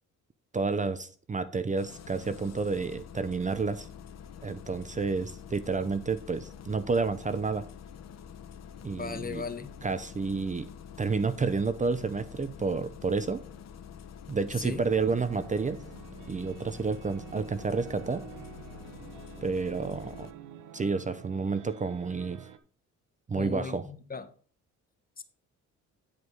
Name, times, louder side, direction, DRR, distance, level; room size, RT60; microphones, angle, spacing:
voice 1, 0.5-3.9 4.4-7.7 8.8-9.4 9.8-10.7 11.0-13.4 14.3-15.8 16.3-18.2 19.4-20.3 20.7-22.4 23.3-23.8, right 4 dB, 25° right, 12 dB, 0.7 m, -30 dB
Engine starting, 1.8-20.3, left 8 dB, 60° left, 1.1 m, -47 dB
voice 2, 9.0-9.7 14.5-14.8 23.3-24.3 25.2-25.3, left 5 dB, 30° left, 10 dB, 1.3 m, -37 dB
sound 1, 14.9-22.6, right 9 dB, 85° right, 1.0 m, -48 dB
10.5 x 4.9 x 5.3 m, 0.42 s
cardioid pair, 90°, 30 cm